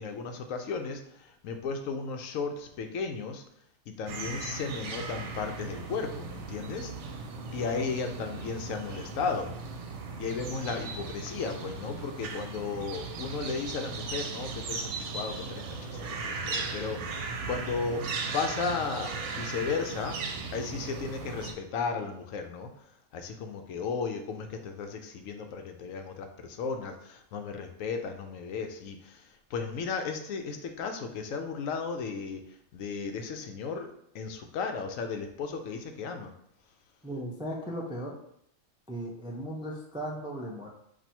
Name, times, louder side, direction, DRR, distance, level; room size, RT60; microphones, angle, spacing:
voice 1, 0.0-3.4 3.9-6.9 7.5-9.5 10.2-18.1 18.3-20.2 20.5-22.7 23.1-32.4 32.7-36.3, left 5 dB, 80° left, 5 dB, 1.0 m, -35 dB
sound 1, 4.1-21.5, right 4 dB, 70° right, 0.9 m, -37 dB
voice 2, 37.0-38.2 38.9-40.7, equal, 5° right, -2 dB, 0.4 m, -36 dB
4.3 x 2.6 x 4.3 m, 0.72 s
omnidirectional pair, 1.4 m